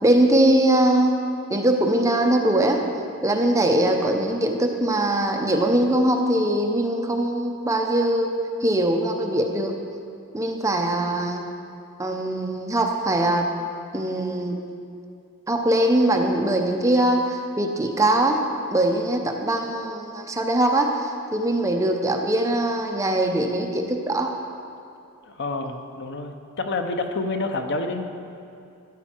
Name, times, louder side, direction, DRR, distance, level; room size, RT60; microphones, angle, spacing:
voice 1, 0.0-1.2 1.5-2.8 3.2-8.3 8.6-9.8 10.3-11.4 12.0-13.5 13.9-14.6 15.5-18.4 18.7-24.3, right 1 dB, 15° right, 3 dB, 0.6 m, -21 dB
voice 2, 25.2-28.0, left 3 dB, 50° left, 5 dB, 0.7 m, -28 dB
13.5 x 8.3 x 4.4 m, 2.5 s
head